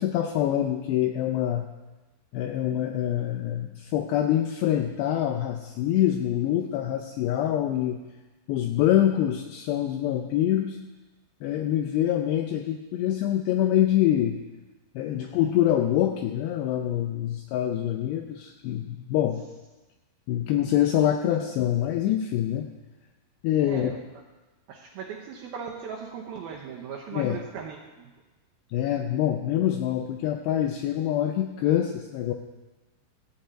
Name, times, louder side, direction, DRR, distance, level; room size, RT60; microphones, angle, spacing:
voice 1, 0.0-1.7 2.3-8.0 8.5-10.8 11.4-14.4 15.0-19.4 20.3-22.7 23.4-23.9 27.1-27.4 28.7-32.3, left 11 dB, 85° left, 5 dB, 2.4 m, -25 dB
voice 2, 23.6-24.2 24.7-28.1, right 6 dB, 75° right, -2 dB, 2.3 m, -39 dB
15.0 x 5.3 x 8.7 m, 1.1 s
omnidirectional pair, 5.5 m